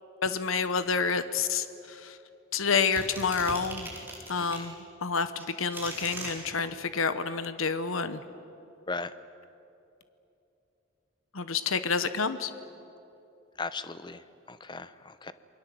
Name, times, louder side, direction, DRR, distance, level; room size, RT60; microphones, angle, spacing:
voice 1, 0.2-2.2 2.5-3.9 4.3-4.7 5.0-8.2 11.3-12.5, left 5 dB, 80° left, 11 dB, 1.0 m, -29 dB
sound 1, 3.0-4.7 5.4-6.3, right 2 dB, 10° right, 4.2 m, -39 dB
voice 2, 4.4-4.7 8.9-9.1 13.6-14.2 14.5-15.3, left 3 dB, 20° left, 13 dB, 0.8 m, -37 dB
28.5 x 22.0 x 7.8 m, 2.8 s
head